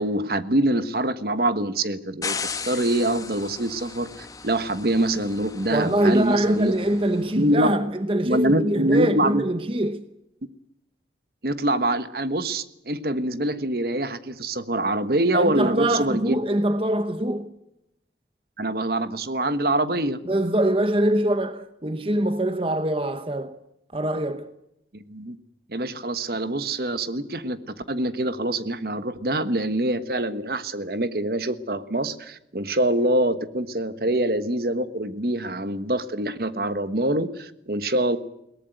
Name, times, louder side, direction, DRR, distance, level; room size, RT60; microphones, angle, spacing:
voice 1, 0.0-6.7 7.3-7.7 8.2-9.4 11.4-16.3 18.6-20.2 25.1-25.4 25.7-38.2, right 1 dB, 55° right, 1.3 m, -25 dB
air brakes loud fade out, 2.2-7.3, left 5 dB, 20° left, 1.2 m, -36 dB
voice 2, 5.7-10.0 15.3-17.5 20.3-23.6 23.9-24.5, right 1 dB, 30° right, 0.9 m, -23 dB
22.0 x 18.5 x 9.3 m
head